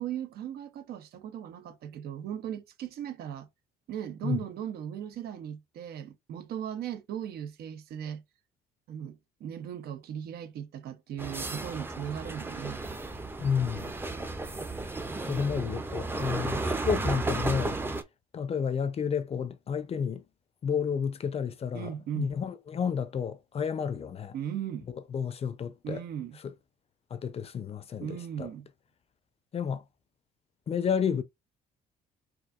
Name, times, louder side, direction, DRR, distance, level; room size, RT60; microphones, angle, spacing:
voice 1, 0.0-3.5 3.9-8.2 8.9-12.8 21.7-22.3 24.3-24.9 25.8-26.4 28.0-28.7, right 9 dB, 65° right, 0.8 m, -37 dB
sound 1, 11.2-18.0, right 2 dB, 15° right, 0.6 m, -33 dB
voice 2, 13.4-13.9 15.2-17.8 18.3-20.2 20.6-24.3 25.1-26.0 26.4-26.5 27.1-28.5 29.5-29.8 30.7-31.2, left 7 dB, 35° left, 0.6 m, -31 dB
4.6 x 2.6 x 2.5 m
cardioid pair, 110°, 17 cm